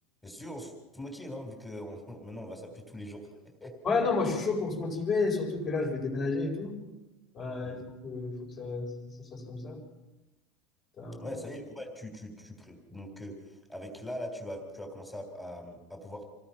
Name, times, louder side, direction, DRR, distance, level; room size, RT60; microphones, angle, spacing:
voice 1, 0.2-3.3 3.6-3.7 7.6-7.8 11.2-16.3, left 1 dB, 5° left, 3 dB, 3.6 m, -41 dB
voice 2, 3.8-6.8 7.3-8.9 9.2-9.8 11.0-11.3, left 4 dB, 20° left, 2 dB, 4.5 m, -31 dB
27.5 x 17.5 x 5.9 m, 1.1 s
supercardioid pair, 180°, 0 cm